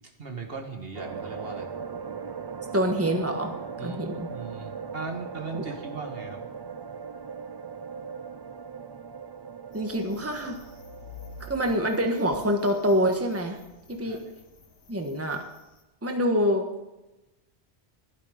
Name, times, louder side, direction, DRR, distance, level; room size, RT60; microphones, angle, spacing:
voice 1, 0.0-1.7 3.8-4.0 4.3-6.5 14.0-14.3, right 4 dB, 65° right, 3 dB, 1.9 m, -38 dB
sound 1, 0.9-12.9, right 6 dB, 40° right, 0.3 m, -39 dB
voice 2, 2.7-3.5 3.8-4.3 9.7-10.6 11.4-13.6 13.9-14.2 14.9-15.4 16.0-16.7, equal, 15° right, 4 dB, 1.4 m, -26 dB
sound 2, 9.7-15.8, left 3 dB, 60° left, 1.4 m, -50 dB
14.0 x 11.5 x 5.2 m, 1.0 s
omnidirectional pair, 1.1 m